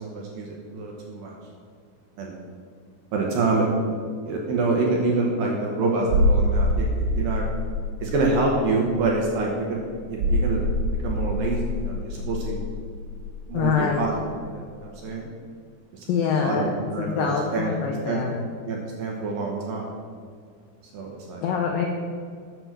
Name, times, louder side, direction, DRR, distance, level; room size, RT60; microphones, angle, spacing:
voice 1, 0.0-1.3 2.2-2.3 3.1-3.7 4.2-7.5 8.0-9.8 10.1-10.7 11.0-12.6 13.5-14.1 14.5-15.3 15.9-16.1 16.4-17.3 17.5-17.7 18.1-18.2 18.6-19.9 20.9-21.4, right 3 dB, 70° right, -1 dB, 2.2 m, -26 dB
sound 1, 6.1-14.5 14.7-14.9, equal, 45° right, 2.9 m, -26 dB
voice 2, 13.5-14.0 16.1-16.7 17.0-18.4 21.4-21.9, left 6 dB, 85° left, 1 dB, 2.0 m, -24 dB
7.9 x 6.8 x 6.0 m, 2.1 s
omnidirectional pair, 5.0 m